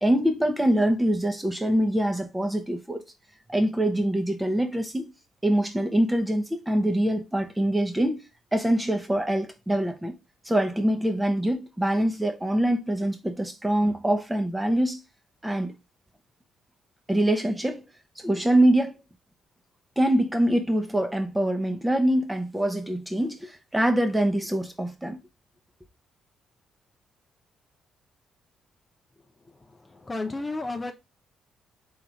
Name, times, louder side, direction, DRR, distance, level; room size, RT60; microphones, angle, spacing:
voice 1, 0.0-3.0 3.5-5.1 5.4-8.2 8.5-10.1 10.4-15.0 15.4-15.7 17.1-17.8 18.2-19.0 20.0-25.2, right 1 dB, 10° right, 0.9 m, -24 dB
voice 2, 29.4-30.9, left 2 dB, 25° left, 0.7 m, -33 dB
3.8 x 3.1 x 3.6 m
hypercardioid pair, 50°, 0 cm